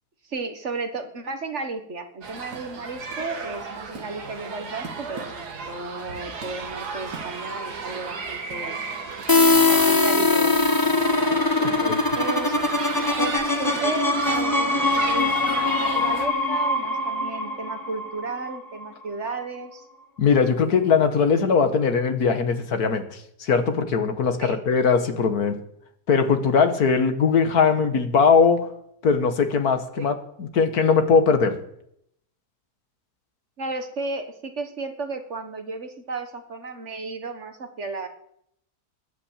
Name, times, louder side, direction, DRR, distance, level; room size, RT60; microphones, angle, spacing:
voice 1, 0.2-8.8 9.7-10.6 11.6-12.6 13.2-19.9 24.4-24.6 30.0-30.1 33.6-38.1, right 3 dB, 45° right, 7 dB, 1.7 m, -34 dB
sound 1, 2.2-16.3, right 4 dB, 80° right, 2.2 m, -34 dB
sound 2, 9.3-18.9, left 3 dB, 15° left, 1.1 m, -22 dB
voice 2, 20.2-25.6 26.1-28.7 29.0-30.1 30.4-31.6, left 5 dB, 70° left, 8 dB, 1.9 m, -20 dB
21.0 x 8.7 x 7.4 m, 0.74 s
omnidirectional pair, 1.7 m